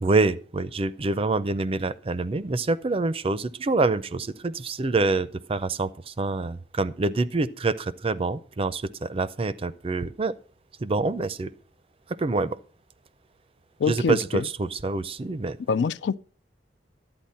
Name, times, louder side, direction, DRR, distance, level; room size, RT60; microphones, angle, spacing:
voice 1, 0.0-10.3 10.8-11.5 12.2-12.6 13.9-15.6, right 3 dB, 30° right, 0.5 m, -26 dB
voice 2, 13.8-14.4 15.7-16.2, left 5 dB, 75° left, 0.4 m, -25 dB
12.0 x 8.9 x 4.3 m
head